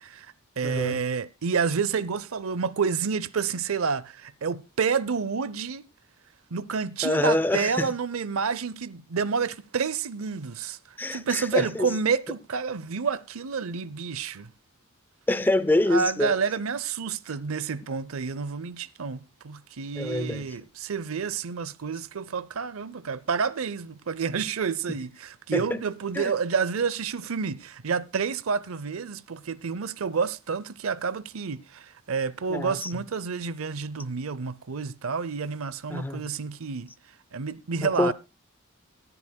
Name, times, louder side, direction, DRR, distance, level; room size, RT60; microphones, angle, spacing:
voice 1, 0.0-5.9 6.5-10.8 11.1-14.5 15.9-36.9 37.3-38.1, right 5 dB, 70° right, 0.6 m, -29 dB
voice 2, 0.6-1.0 7.0-7.9 11.0-11.9 15.3-16.3 20.0-20.4 25.5-25.8 26.2-26.3 32.5-32.9 35.9-36.2 37.8-38.1, left 1 dB, 10° left, 0.5 m, -25 dB
18.5 x 11.0 x 2.3 m
head